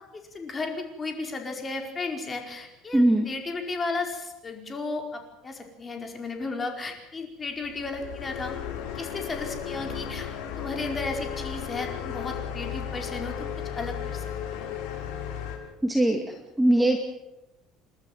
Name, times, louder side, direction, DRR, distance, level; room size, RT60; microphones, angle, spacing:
voice 1, 0.1-10.3 10.5-14.7, left 3 dB, 20° left, 3 dB, 4.8 m, -34 dB
voice 2, 2.9-3.3 15.8-16.2 16.6-17.0, right 1 dB, 5° right, 3 dB, 2.3 m, -20 dB
sound 1, 7.5-15.6, left 8 dB, 90° left, 6.5 m, -35 dB
30.0 x 12.5 x 9.3 m, 0.92 s
cardioid pair, 140°, 0 cm